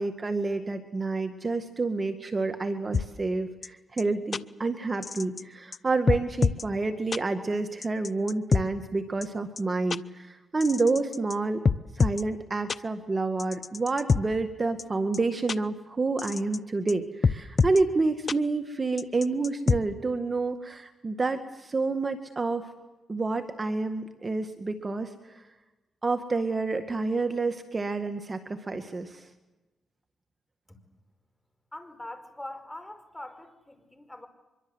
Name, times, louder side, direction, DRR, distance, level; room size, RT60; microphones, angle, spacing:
voice 1, 0.0-11.6 11.9-22.7 23.1-25.4 26.0-29.3, right 3 dB, 30° right, 7 dB, 2.0 m, -29 dB
sound 1, 2.9-3.0 3.6-3.7 4.0-4.1 4.3-4.4 5.0-5.4 5.7-5.8 6.1-6.6 7.1-7.2 7.8-8.6 9.2-9.3 9.6-9.7 9.9-10.0 10.6-11.3 11.6-12.2 12.7-12.8 13.4-14.2 14.8-14.9 15.1-15.2 15.5-15.6 16.2-16.6 16.9-17.0 17.2-17.8 18.3-18.4 19.0-19.8, left 5 dB, 45° left, 0.8 m, -25 dB
voice 2, 31.7-34.3, left 1 dB, 10° left, 9 dB, 5.1 m, -43 dB
24.5 x 23.0 x 8.0 m, 1.1 s
cardioid pair, 75°, 0 cm